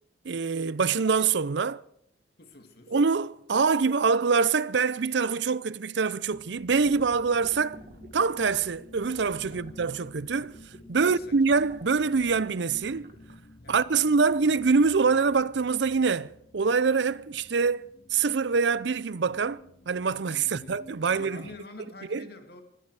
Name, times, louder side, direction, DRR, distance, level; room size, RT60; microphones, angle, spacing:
voice 1, 0.2-1.8 2.9-7.8 8.1-10.6 10.9-13.1 13.7-17.8 18.1-21.4 22.1-22.2, right 5 dB, 70° right, 0.6 m, -25 dB
voice 2, 2.4-3.0 9.5-9.8 11.0-11.6 13.6-13.8 20.4-22.6, left 2 dB, 55° left, 2.3 m, -47 dB
sound 1, 6.3-21.7, left 2 dB, 40° left, 0.9 m, -52 dB
sound 2, 6.8-13.3, right 1 dB, 50° right, 2.0 m, -51 dB
20.0 x 14.0 x 4.8 m
head